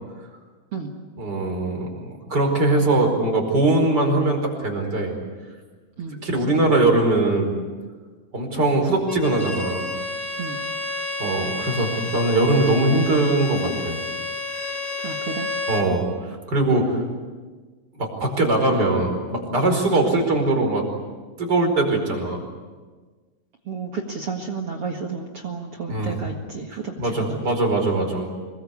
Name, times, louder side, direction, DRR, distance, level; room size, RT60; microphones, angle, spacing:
voice 1, 1.2-5.1 6.2-7.5 8.3-9.9 11.2-14.0 15.7-17.0 18.0-20.8 21.4-22.4 25.9-26.2 27.0-28.5, right 2 dB, 25° right, 3 dB, 5.1 m, -21 dB
Bowed string instrument, 9.1-15.9, left 2 dB, 10° left, 3.0 m, -30 dB
voice 2, 15.0-15.5 19.9-20.1 23.7-27.4, right 5 dB, 45° right, 2 dB, 2.1 m, -32 dB
26.0 x 22.5 x 8.4 m, 1.4 s
omnidirectional pair, 4.6 m